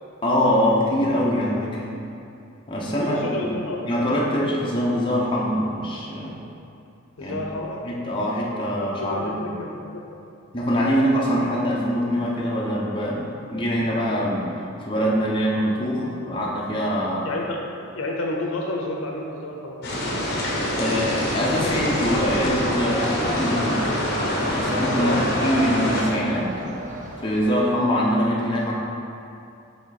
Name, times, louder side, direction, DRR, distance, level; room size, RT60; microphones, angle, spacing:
voice 1, 0.2-1.9 2.7-3.5 3.9-6.4 7.2-7.4 7.8-9.5 10.5-14.5 14.9-17.3 20.8-23.9 24.5-26.5 27.2-28.7, equal, 25° left, -6 dB, 0.8 m, -23 dB
voice 2, 2.8-3.9 7.2-7.9 8.5-8.6 9.0-10.2 17.2-19.8 24.9-25.2, left 2 dB, 70° left, -1 dB, 0.6 m, -30 dB
sound 1, 19.8-26.0, equal, 50° left, 1.1 m, -25 dB
sound 2, 20.9-27.6, right 1 dB, 35° right, 0.6 m, -35 dB
7.2 x 3.3 x 4.1 m, 2.6 s
head